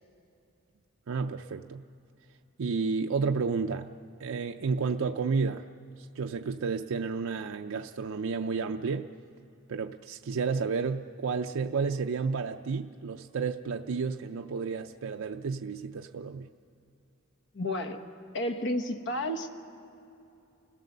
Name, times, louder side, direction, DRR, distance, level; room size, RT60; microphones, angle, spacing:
voice 1, 1.1-1.8 2.6-3.9 4.2-5.6 6.0-9.1 9.7-16.5, right 5 dB, 65° right, 5 dB, 0.5 m, -31 dB
voice 2, 17.5-18.0 18.3-19.5, left 1 dB, 60° left, 7 dB, 1.2 m, -31 dB
29.0 x 17.0 x 6.7 m, 2.7 s
head